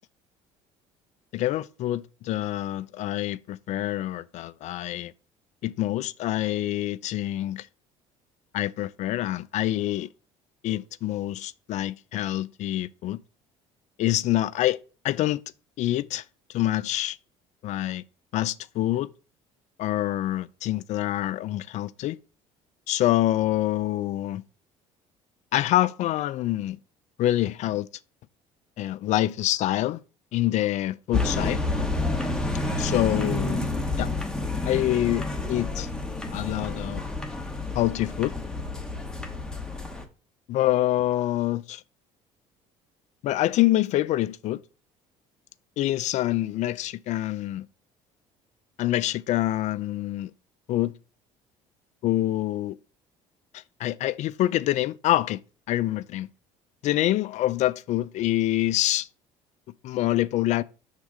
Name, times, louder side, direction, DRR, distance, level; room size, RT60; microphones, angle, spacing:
voice 1, 1.3-5.1 5.6-7.7 8.5-10.1 10.6-13.2 14.0-14.8 15.0-15.4 15.8-16.2 16.5-17.2 17.6-18.0 18.3-19.1 19.8-22.2 22.9-24.4 25.5-26.8 27.2-27.9 28.8-30.0 30.3-31.6 32.8-33.6 34.0-34.1 34.6-35.9 36.3-37.0 37.7-38.3 40.5-41.8 43.2-44.6 45.8-47.7 48.8-50.3 50.7-51.0 52.0-52.8 53.5-55.4 55.7-56.3 56.8-59.1 59.8-60.6, left 14 dB, 60° left, 0.4 m, -26 dB
sound 1, 31.1-40.0, left 2 dB, 5° left, 1.1 m, -29 dB
6.1 x 3.7 x 4.8 m
supercardioid pair, 90°, 14 cm